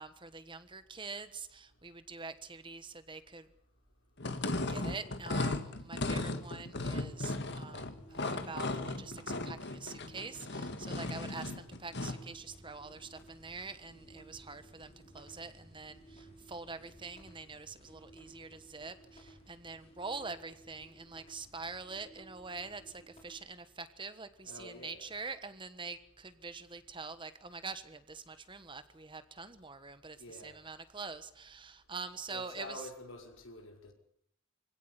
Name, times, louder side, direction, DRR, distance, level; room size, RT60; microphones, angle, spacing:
voice 1, 0.0-3.5 4.7-32.9, right 4 dB, 25° right, 1.3 m, -45 dB
sound 1, 4.2-12.3, left 2 dB, 55° left, 2.1 m, -36 dB
sound 2, 7.3-23.3, right 1 dB, 30° left, 6.3 m, -57 dB
voice 2, 24.4-25.1 30.2-30.6 32.3-33.9, left 1 dB, 70° left, 5.9 m, -48 dB
25.5 x 17.0 x 9.9 m
head